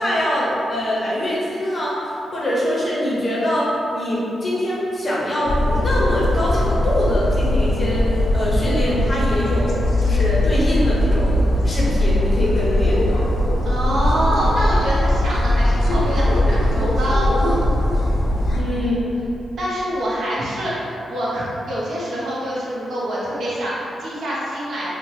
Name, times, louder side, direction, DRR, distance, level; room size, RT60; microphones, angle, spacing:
voice 1, 0.0-2.0 2.3-9.8 10.0-13.2 18.5-19.0, equal, 25° left, -7 dB, 0.7 m, -23 dB
sound 1, 5.5-18.6, left 1 dB, 60° left, 0.4 m, -19 dB
voice 2, 13.6-17.6 18.5-19.0 19.6-24.9, equal, 65° right, -8 dB, 0.7 m, -25 dB
2.8 x 2.1 x 3.1 m, 2.9 s
wide cardioid pair, 140°, 0 cm